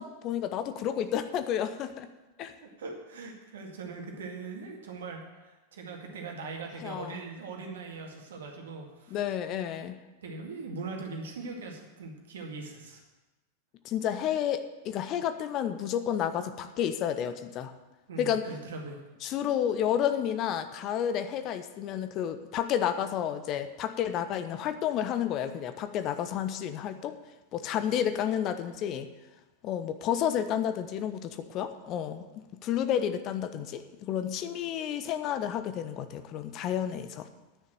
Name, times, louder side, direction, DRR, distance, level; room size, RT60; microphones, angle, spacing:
voice 1, 0.0-2.1 2.4-2.5 6.8-7.2 9.1-10.0 13.8-17.7 18.2-18.5 19.2-27.1 27.5-29.1 29.6-32.3 32.6-37.3, left 9 dB, 35° left, 10 dB, 0.8 m, -31 dB
voice 2, 2.6-9.2 10.2-13.0 18.1-19.0, right 3 dB, 60° right, 1 dB, 2.1 m, -41 dB
9.9 x 6.6 x 8.9 m, 1.1 s
figure-of-eight pair, 90°, 0 cm